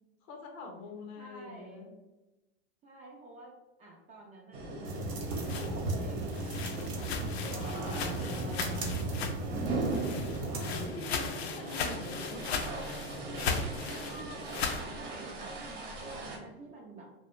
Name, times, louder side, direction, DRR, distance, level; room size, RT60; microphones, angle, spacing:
voice 1, 0.2-1.9 10.5-12.8, left 3 dB, 50° left, 2 dB, 0.7 m, -45 dB
voice 2, 1.2-1.9 2.8-7.1 7.4-10.6 14.1-17.1, right 2 dB, 25° right, -1 dB, 0.4 m, -48 dB
sound 1, 4.5-16.4, right 2 dB, 50° right, 1.0 m, -39 dB
sound 2, 4.8-10.9, right 2 dB, 80° right, 0.7 m, -36 dB
sound 3, 5.1-9.6 9.9-14.9, left 5 dB, 85° left, 0.5 m, -37 dB
2.3 x 2.1 x 2.9 m, 1.0 s
hypercardioid pair, 110°, 31 cm